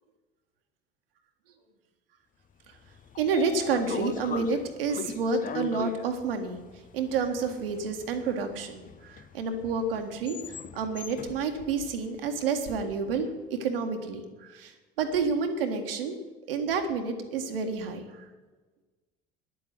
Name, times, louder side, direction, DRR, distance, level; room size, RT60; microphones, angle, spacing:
Train / Sliding door, 2.7-12.9, left 7 dB, 30° left, 0.8 m, -41 dB
voice 1, 3.2-6.6 6.9-16.2 16.5-18.3, right 4 dB, 70° right, 5 dB, 1.7 m, -29 dB
11.0 x 7.7 x 9.4 m, 1.3 s
figure-of-eight pair, 60°, 29 cm